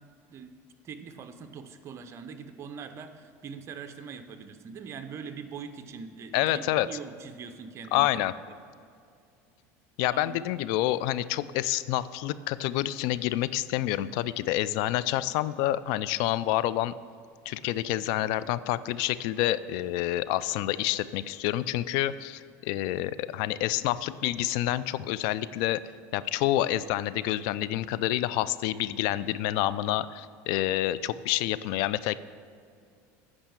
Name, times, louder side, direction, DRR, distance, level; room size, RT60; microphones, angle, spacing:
voice 1, 0.8-8.3 10.1-10.4, right 6 dB, 40° right, 8 dB, 0.8 m, -42 dB
voice 2, 6.3-6.9 7.9-8.3 10.0-16.9 17.5-25.8 26.1-32.2, left 14 dB, 65° left, 17 dB, 0.4 m, -28 dB
8.8 x 5.5 x 7.2 m, 2.3 s
supercardioid pair, 115°, 8 cm